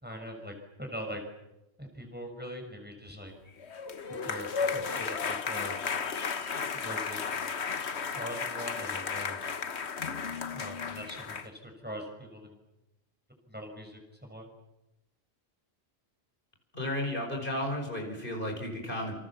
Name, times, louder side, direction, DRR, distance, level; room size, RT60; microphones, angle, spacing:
voice 1, 0.0-1.2 1.8-3.3 4.3-5.8 6.7-7.5 8.1-9.4 10.5-12.5 13.5-14.5, equal, 10° right, 3 dB, 5.8 m, -42 dB
sound 1, 3.6-11.5, left 5 dB, 80° left, 1.5 m, -34 dB
voice 2, 16.7-19.2, left 1 dB, 55° left, 2 dB, 5.3 m, -33 dB
28.0 x 26.5 x 7.3 m, 0.96 s
omnidirectional pair, 1.1 m